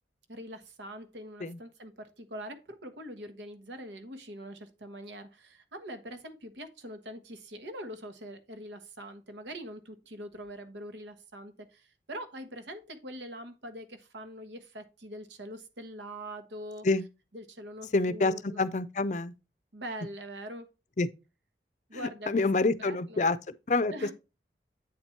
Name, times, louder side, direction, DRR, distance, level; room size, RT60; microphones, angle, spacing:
voice 1, 0.3-16.8 17.3-18.6 19.7-20.7 21.9-22.3 22.6-23.2 23.9-24.1, equal, 85° right, 1.3 m, -43 dB
voice 2, 17.9-19.3 21.0-21.1 21.9-24.1, left 3 dB, 40° left, 0.5 m, -27 dB
8.6 x 4.4 x 4.4 m
head